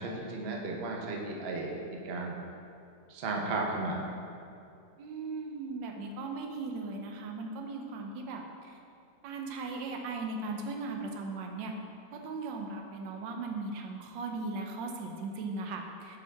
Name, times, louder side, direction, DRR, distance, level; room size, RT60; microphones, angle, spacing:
voice 1, 0.0-1.8 2.0-2.4 3.1-4.0, right 2 dB, 60° right, -1 dB, 0.6 m, -34 dB
voice 2, 5.0-8.8 9.2-11.7 12.1-16.2, right 3 dB, 85° right, 2 dB, 1.3 m, -38 dB
7.1 x 4.5 x 3.4 m, 2.6 s
omnidirectional pair, 2.0 m